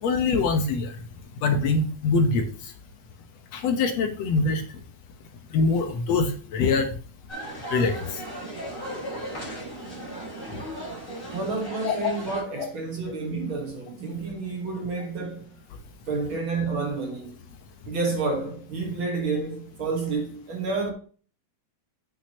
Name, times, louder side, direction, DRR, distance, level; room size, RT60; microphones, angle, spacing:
voice 1, 0.0-0.9 1.4-2.4 3.5-4.6 5.5-6.9 7.7-8.1 11.8-12.1, left 4 dB, 65° left, 2.2 m, -23 dB
sound 1, 7.3-12.4, right 1 dB, 15° left, 5.2 m, -36 dB
voice 2, 11.3-15.6 16.1-17.4 17.9-20.9, right 3 dB, 50° right, 1.9 m, -29 dB
8.7 x 8.3 x 2.9 m
omnidirectional pair, 3.3 m